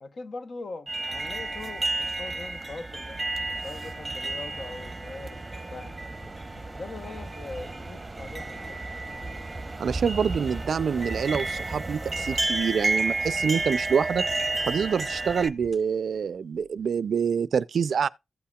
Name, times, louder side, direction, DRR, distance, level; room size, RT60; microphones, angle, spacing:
voice 1, 0.0-3.2 3.5-6.0 6.7-8.8, left 3 dB, 55° left, 0.9 m, -41 dB
sound 1, 0.9-15.5, right 2 dB, 20° right, 0.8 m, -31 dB
sound 2, 6.1-15.7, equal, 25° left, 1.6 m, -51 dB
voice 2, 9.8-14.2 14.7-18.1, right 6 dB, 70° right, 0.4 m, -26 dB
sound 3, 10.2-17.2, left 5 dB, 75° left, 2.6 m, -57 dB
15.5 x 5.7 x 2.3 m
wide cardioid pair, 110°, 0 cm